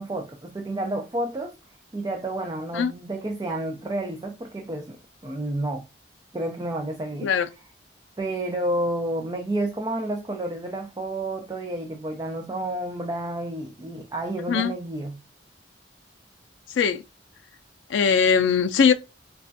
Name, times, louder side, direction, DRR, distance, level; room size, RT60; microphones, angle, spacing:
voice 1, 0.0-1.5 1.9-5.0 5.2-5.8 6.3-7.3 8.2-15.2, right 1 dB, 20° right, 0.4 m, -30 dB
voice 2, 17.9-18.9, left 6 dB, 85° left, 0.4 m, -20 dB
4.1 x 2.3 x 2.5 m
head